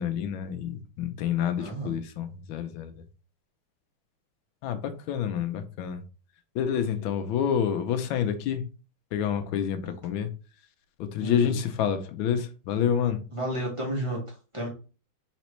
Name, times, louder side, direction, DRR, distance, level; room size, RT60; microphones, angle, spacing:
voice 1, 0.0-2.9 4.6-6.0 6.5-8.6 9.1-10.3 11.0-13.2, left 8 dB, 70° left, 1.4 m, -28 dB
voice 2, 1.6-2.0 9.8-9.9 11.1-11.5 13.3-14.2 14.5-14.7, right 1 dB, 20° right, 1.1 m, -32 dB
4.2 x 4.0 x 3.0 m
omnidirectional pair, 2.4 m